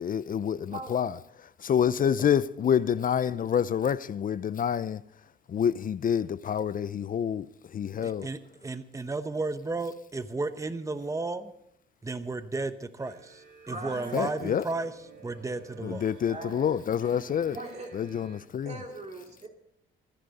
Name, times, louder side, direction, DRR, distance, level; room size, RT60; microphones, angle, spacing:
voice 1, 0.0-5.0 5.5-8.3 14.1-14.6 15.8-17.6 17.9-18.7, left 8 dB, 45° left, 0.5 m, -28 dB
voice 2, 8.0-11.5 12.0-14.9 15.2-16.1, right 3 dB, 15° right, 1.0 m, -33 dB
sound 1, 13.0-18.4, right 4 dB, 70° right, 5.9 m, -50 dB
voice 3, 13.6-14.3 16.3-16.7 17.5-19.5, right 2 dB, 35° right, 2.6 m, -41 dB
26.0 x 10.0 x 4.1 m
cardioid pair, 90°, 20 cm